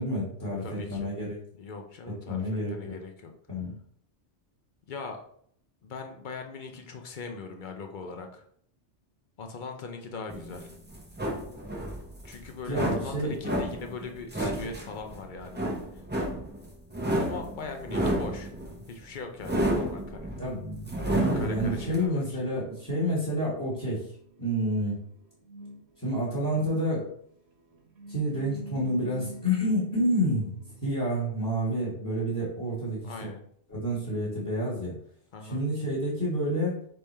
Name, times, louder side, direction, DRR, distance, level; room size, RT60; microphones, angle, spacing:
voice 1, 0.0-1.4 2.3-2.9 3.5-3.7 12.7-13.3 20.4-24.1 24.4-25.0 26.0-27.1 28.1-33.1 33.7-34.9 35.5-36.8, equal, 15° left, -7 dB, 1.2 m, -29 dB
voice 2, 0.6-1.1 1.6-3.3 4.9-5.2 5.8-8.4 9.4-10.7 12.2-15.7 15.9-16.0 17.2-18.5 18.9-20.3 21.2-22.7 33.0-33.4 35.3-35.6, left 4 dB, 55° left, 4 dB, 0.6 m, -40 dB
sound 1, 10.3-22.0, right 1 dB, 10° right, 0.5 m, -31 dB
sound 2, 21.8-31.0, right 1 dB, 65° right, 1.0 m, -47 dB
3.5 x 3.3 x 4.2 m, 0.64 s
omnidirectional pair, 1.2 m